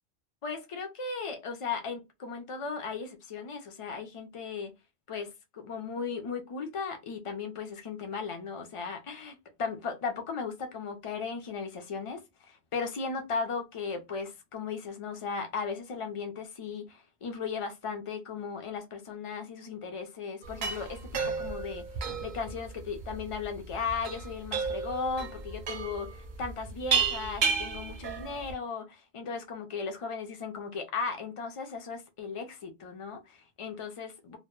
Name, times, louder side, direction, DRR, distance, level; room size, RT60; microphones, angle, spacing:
voice 1, 0.4-4.7 5.1-21.9 22.2-34.4, left 5 dB, 55° left, 0.3 m, -36 dB
sound 1, 20.4-28.5, right 5 dB, 60° right, 0.5 m, -33 dB
2.1 x 2.0 x 2.9 m
omnidirectional pair, 1.1 m